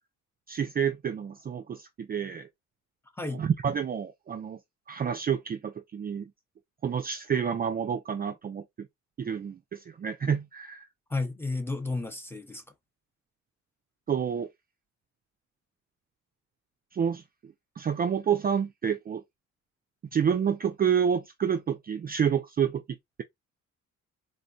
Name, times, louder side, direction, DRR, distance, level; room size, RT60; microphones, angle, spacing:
voice 1, 0.5-2.5 3.3-4.6 4.9-6.3 6.8-8.6 9.2-10.8 14.1-14.5 16.9-17.2 17.8-19.2 20.1-22.8, right 7 dB, 30° right, 0.4 m, -28 dB
voice 2, 3.1-3.4 11.1-12.6, left 3 dB, 10° left, 0.7 m, -32 dB
3.6 x 2.1 x 2.6 m
cardioid pair, 90°, 30 cm